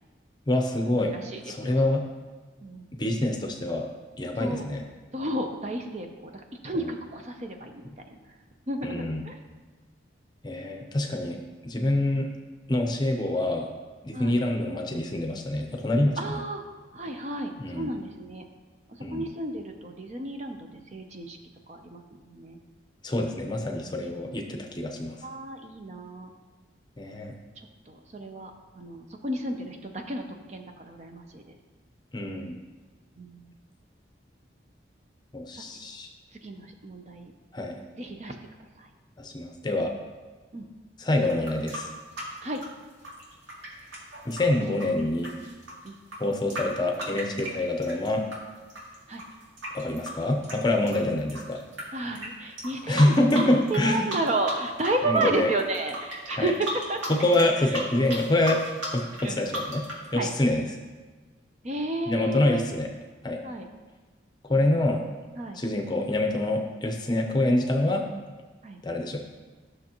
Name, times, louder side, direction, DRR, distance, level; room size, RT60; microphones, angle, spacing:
voice 1, 0.5-1.1 1.5-2.0 3.0-3.9 4.2-4.8 6.7-6.9 8.8-9.2 10.4-11.4 11.6-12.3 12.7-13.7 14.0-16.4 17.6-17.9 19.0-19.3 23.0-25.2 27.0-27.3 32.1-32.6 35.3-36.1 37.5-37.8 39.2-39.9 41.0-41.9 44.3-45.3 46.2-48.2 49.7-51.6 52.9-54.1 55.1-55.5 56.4-56.5 57.1-58.6 58.9-59.8 60.1-60.6 62.1-62.9 63.2-63.4 64.5-65.0 65.5-68.0 68.8-69.2, left 1 dB, 20° left, 3 dB, 0.7 m, -26 dB
voice 2, 1.1-1.7 2.6-2.8 4.4-4.7 5.1-7.8 8.1-8.2 8.7-9.4 14.1-14.4 16.2-16.6 16.9-18.4 19.1-21.4 21.7-22.6 25.2-26.3 27.9-28.5 28.8-30.2 30.5-31.6 33.2-33.5 36.4-37.3 38.0-38.3 38.8-38.9 40.5-40.7 42.4-42.6 45.8-45.9 49.1-49.2 51.9-57.0 59.2-59.5 60.1-60.3 61.6-62.6 63.4-63.7 64.5-64.7 65.4-65.6 68.6-68.8, right 2 dB, 35° right, 4 dB, 0.6 m, -32 dB
sound 1, 41.2-48.4 48.7-51.8 52.1-52.3 52.6-53.8 54.1-54.9 55.2-60.0, right 1 dB, 90° right, 2.3 m, -36 dB
12.0 x 6.4 x 3.0 m, 1.3 s
head